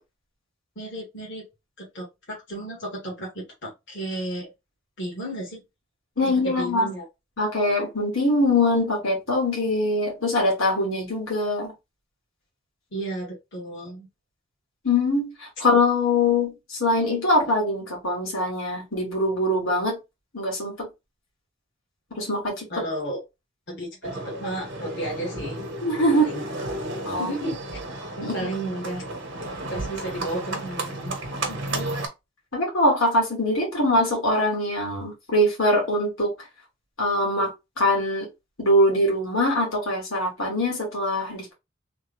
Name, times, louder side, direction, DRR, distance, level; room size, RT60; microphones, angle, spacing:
voice 1, 0.7-1.5 1.8-4.5 5.0-5.6 6.2-7.0 12.9-14.1 22.7-23.2 23.7-25.6 26.1-26.4 27.1-27.6 28.2-29.0 29.7-31.1, right 1 dB, 60° left, 1.6 m, -33 dB
voice 2, 6.2-6.9 7.4-11.7 14.8-20.0 20.3-20.9 22.2-22.7 25.8-26.3 27.0-27.3 28.2-28.5 31.5-31.9 32.5-36.3 37.0-38.3 38.6-41.5, left 1 dB, 85° left, 1.8 m, -23 dB
Livestock farm animals working animals, 24.0-32.1, right 2 dB, 60° right, 1.0 m, -33 dB
3.4 x 2.2 x 3.4 m
head